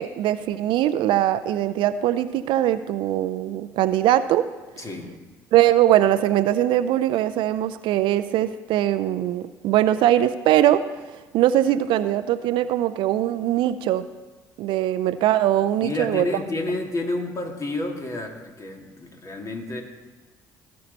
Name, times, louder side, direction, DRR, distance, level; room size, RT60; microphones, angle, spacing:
voice 1, 0.0-4.4 5.5-10.8 11.3-14.0 14.6-16.3, right 12 dB, 65° right, 13 dB, 0.5 m, -21 dB
voice 2, 4.8-5.2 15.8-19.8, left 2 dB, 35° left, 2 dB, 2.2 m, -30 dB
16.5 x 5.7 x 4.1 m, 1.2 s
hypercardioid pair, 55°, 9 cm